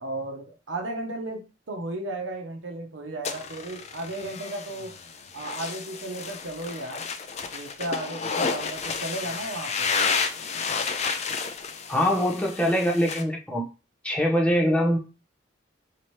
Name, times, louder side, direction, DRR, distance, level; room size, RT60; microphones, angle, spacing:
voice 1, 0.0-5.0 5.3-7.1 7.5-9.9, right 2 dB, 85° right, 3 dB, 0.8 m, -34 dB
sound 1, 3.2-13.2, left 5 dB, 35° left, 0.4 m, -31 dB
voice 2, 11.9-13.6 14.0-15.0, equal, 5° left, -1 dB, 0.8 m, -23 dB
4.1 x 2.9 x 3.2 m, 0.32 s
head